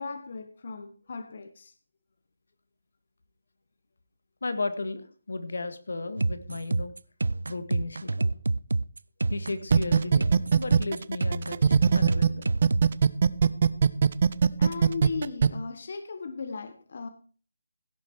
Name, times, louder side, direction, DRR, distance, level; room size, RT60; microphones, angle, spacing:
voice 1, 0.0-1.7 14.6-17.1, left 4 dB, 45° left, 1.4 m, -37 dB
voice 2, 4.4-6.9 7.5-8.3 9.3-12.5, left 3 dB, 80° left, 1.7 m, -34 dB
sound 1, 6.2-12.9, right 3 dB, 90° right, 0.5 m, -28 dB
sound 2, 9.7-12.3 12.6-15.5, right 6 dB, 40° right, 0.6 m, -20 dB
16.5 x 7.7 x 4.6 m
hypercardioid pair, 170°, 0 cm